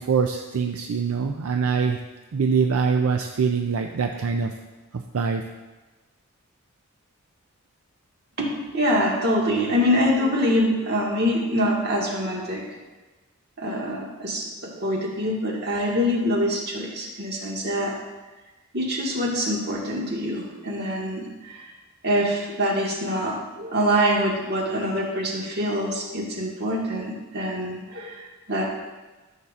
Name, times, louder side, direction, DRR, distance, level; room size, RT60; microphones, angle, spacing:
voice 1, 0.0-2.0 2.3-4.5 4.9-5.4, right 5 dB, 75° right, 4 dB, 0.5 m, -24 dB
voice 2, 8.4-12.6 13.6-17.9 18.7-21.6 22.0-28.2 28.5-28.6, equal, 50° right, -3 dB, 1.7 m, -25 dB
13.5 x 7.0 x 2.5 m, 1.2 s
head